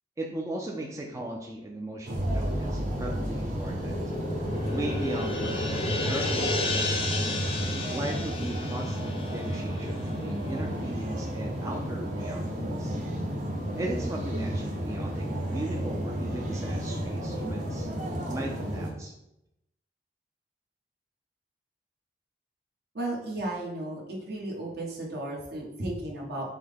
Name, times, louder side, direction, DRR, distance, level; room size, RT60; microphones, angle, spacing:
voice 1, 0.2-4.0 4.7-7.2 7.9-13.0 13.8-15.3 15.5-17.9 18.3-19.1, right 1 dB, 20° right, 0 dB, 0.4 m, -37 dB
sound 1, 2.0-18.9, equal, 45° right, 0.8 m, -32 dB
sound 2, 2.1-9.5, equal, 80° right, 0.8 m, -38 dB
sound 3, 3.7-10.3, left 2 dB, 35° left, 0.6 m, -33 dB
voice 2, 22.9-24.0 24.3-26.4, right 1 dB, 65° right, -3 dB, 1.1 m, -34 dB
5.7 x 2.1 x 3.4 m, 0.83 s
head